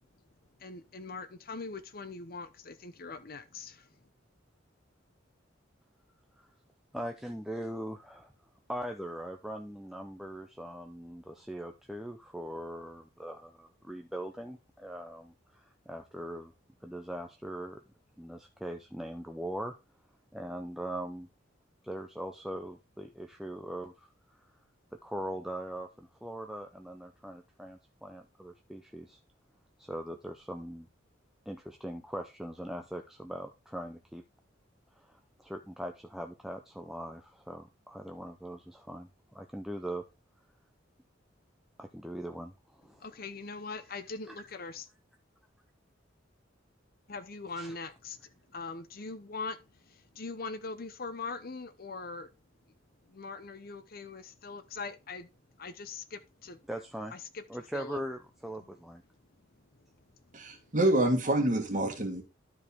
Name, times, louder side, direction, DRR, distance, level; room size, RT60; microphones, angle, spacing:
voice 1, 0.6-3.9 42.9-44.9 47.1-52.3 53.1-55.3 55.6-56.6 57.1-57.4 57.7-58.0 58.6-58.7 60.2-60.7, left 4 dB, 50° left, 0.8 m, -42 dB
voice 2, 6.9-8.3 8.7-16.5 16.8-17.8 18.2-19.7 20.3-21.3 21.8-24.1 24.9-29.2 29.8-30.9 31.5-34.2 35.0-40.0 41.8-43.0 44.3-44.4 47.6-47.7 56.7-57.1 57.5-59.0, right 1 dB, ahead, 0.6 m, -41 dB
voice 3, 60.3-62.2, right 1 dB, 40° right, 1.8 m, -27 dB
12.0 x 4.9 x 3.5 m
head